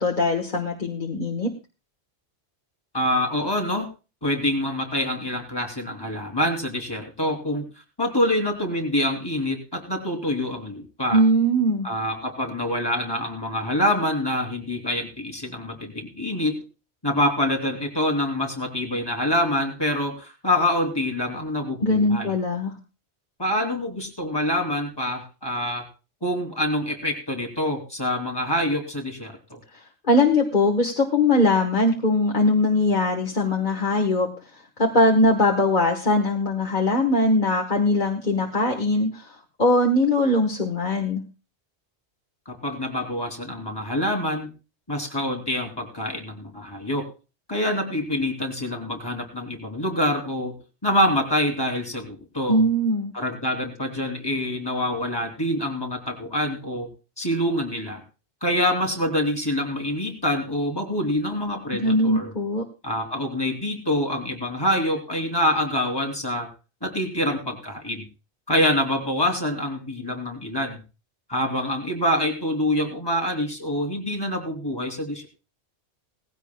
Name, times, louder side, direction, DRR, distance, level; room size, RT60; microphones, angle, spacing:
voice 1, 0.0-1.5 11.1-11.9 21.8-22.7 30.1-34.3 34.8-41.2 52.5-53.1 61.7-62.7, left 1 dB, 45° left, 1 dB, 1.6 m, -21 dB
voice 2, 2.9-3.9 4.2-7.7 8.0-11.2 11.8-16.6 17.0-22.3 23.4-25.8 26.2-29.6 42.5-44.5 44.9-47.1 47.5-50.6 50.8-52.6 53.1-56.9 57.2-58.0 58.4-62.3 62.8-66.5 66.8-68.0 68.5-70.8 71.3-75.3, left 1 dB, 20° left, 2 dB, 3.1 m, -26 dB
19.0 x 15.5 x 2.3 m, 0.32 s
omnidirectional pair, 1.1 m